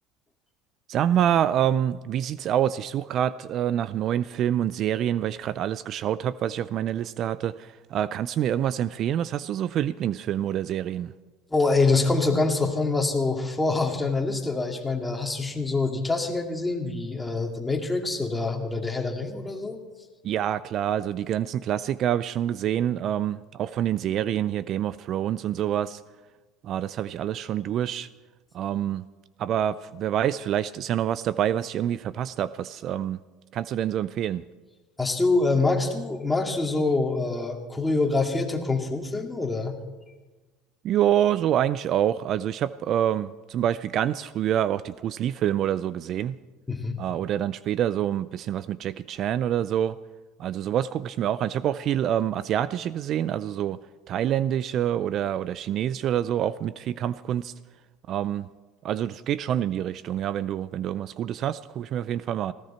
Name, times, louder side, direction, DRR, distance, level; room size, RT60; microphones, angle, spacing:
voice 1, 0.9-11.1 20.2-26.0 26.6-28.1 28.5-29.1 29.4-33.2 33.5-34.4 40.8-46.4 47.0-50.0 50.4-53.8 54.1-57.5 58.1-58.5 58.8-62.5, right 10 dB, 50° right, 17 dB, 0.4 m, -26 dB
voice 2, 11.5-19.8 35.0-39.8 46.7-47.0, left 3 dB, 10° left, 2 dB, 2.5 m, -25 dB
19.5 x 16.0 x 4.4 m, 1.2 s
supercardioid pair, 105°, 0 cm